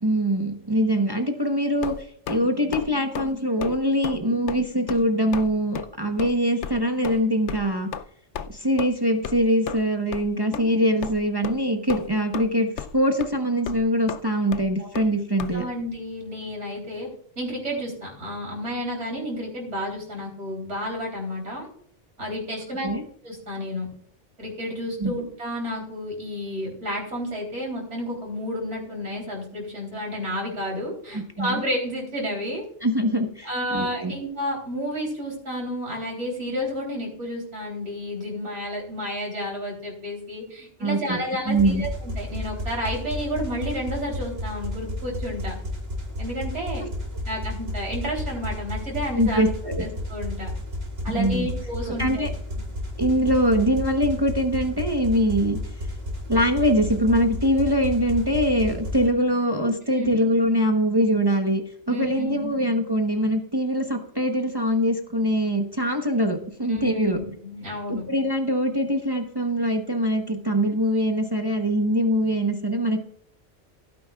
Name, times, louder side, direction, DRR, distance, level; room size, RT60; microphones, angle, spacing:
voice 1, 0.0-1.9 2.3-7.9 8.5-15.6 22.8-23.0 25.0-25.1 31.1-31.5 32.8-34.1 40.8-41.8 49.2-49.8 51.1-51.5 52.0-52.3 53.0-55.6 56.3-61.6 61.9-67.2 67.9-73.0, equal, 20° right, 4 dB, 1.0 m, -23 dB
sound 1, 1.8-2.4 2.7-2.9 3.1-3.3 3.6-3.8 4.0-4.2 4.5-4.6 4.9-5.0 5.3-5.5 5.7-5.9 6.2-6.3 6.6-6.7 7.0-7.2 7.5-7.6 7.9-8.0 8.3-8.5 8.8-8.9 9.2-9.4 9.7-9.8 10.1-10.2 10.5-10.6 11.0-11.1 11.4-11.6 11.9-12.5 12.8-12.9 13.2-13.3 13.7-13.8 14.1-14.2 14.5-14.6 14.9-15.1 15.4-15.5, left 8 dB, 80° left, 0.9 m, -33 dB
voice 2, 10.5-10.8 14.8-14.9 15.5-17.1 17.4-21.7 22.2-22.9 23.2-23.9 24.4-32.6 33.4-45.5 46.2-46.8 47.3-49.4 49.8-50.5 51.0-52.3 59.9-60.2 61.9-62.5 66.7-68.0, equal, 85° right, -2 dB, 3.7 m, -31 dB
sound 2, 41.5-59.1, left 1 dB, 60° right, 2.7 m, -32 dB
16.5 x 9.4 x 2.3 m, 0.62 s
omnidirectional pair, 1.2 m